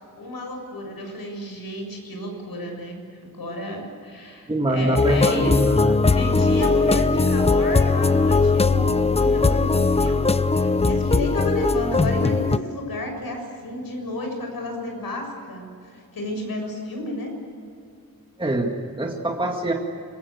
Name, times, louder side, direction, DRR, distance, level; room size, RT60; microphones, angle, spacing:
voice 1, 0.1-3.0 3.3-5.6 6.0-17.3, left 1 dB, 70° left, 3 dB, 6.9 m, -31 dB
voice 2, 4.5-6.0 18.4-19.7, right 1 dB, 15° right, 1 dB, 2.1 m, -24 dB
sound 1, 5.0-12.6, left 3 dB, 15° left, 0.6 m, -19 dB
26.5 x 23.0 x 8.1 m, 2.4 s
wide cardioid pair, 160°, 36 cm